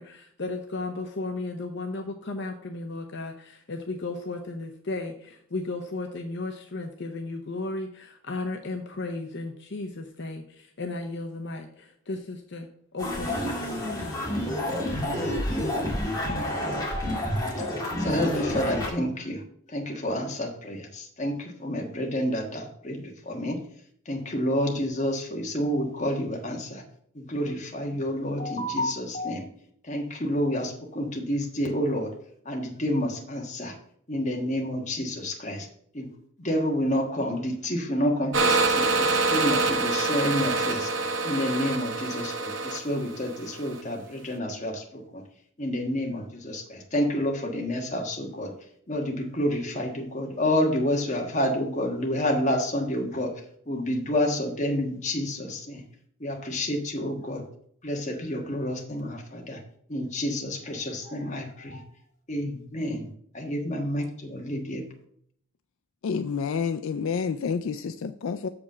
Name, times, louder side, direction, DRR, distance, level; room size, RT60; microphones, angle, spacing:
voice 1, 0.0-13.6, left 2 dB, 55° left, 4 dB, 0.8 m, -35 dB
sound 1, 13.0-18.9, left 1 dB, 15° left, 2.1 m, -29 dB
voice 2, 18.0-19.4 19.7-23.6 24.0-26.8 27.1-29.5 29.8-32.1 32.4-33.8 34.1-35.7 35.9-45.2 45.6-48.5 48.9-53.3 53.6-55.8 56.2-57.4 57.8-59.6 59.9-61.8 62.3-64.9, left 1 dB, 35° left, 1 dB, 1.5 m, -29 dB
sound 2, 38.3-43.8, right 3 dB, 60° right, 0.7 m, -26 dB
voice 3, 66.0-68.5, left 6 dB, 70° left, 10 dB, 0.4 m, -29 dB
7.1 x 5.1 x 6.1 m, 0.65 s
head